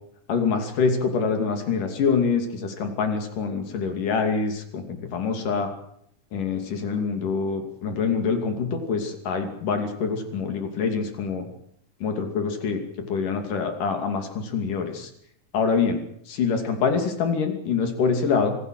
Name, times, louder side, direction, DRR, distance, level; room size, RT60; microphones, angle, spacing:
voice 1, 0.3-5.7 6.3-11.5 12.0-12.8 13.1-15.1 15.5-16.0 16.3-18.6, left 5 dB, 75° left, 6 dB, 4.3 m, -25 dB
26.5 x 16.0 x 7.8 m, 0.69 s
omnidirectional pair, 3.7 m